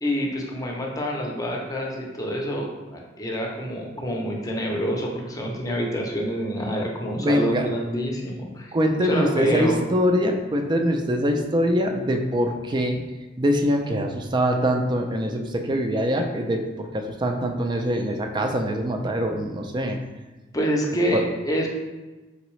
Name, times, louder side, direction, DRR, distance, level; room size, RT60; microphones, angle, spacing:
voice 1, 0.0-8.7 9.0-9.8 20.5-21.7, equal, 20° left, 0 dB, 0.6 m, -27 dB
voice 2, 7.2-7.7 8.7-13.0 13.4-20.0 21.1-21.2, equal, 25° right, 4 dB, 0.4 m, -23 dB
3.9 x 3.5 x 3.1 m, 1.2 s
head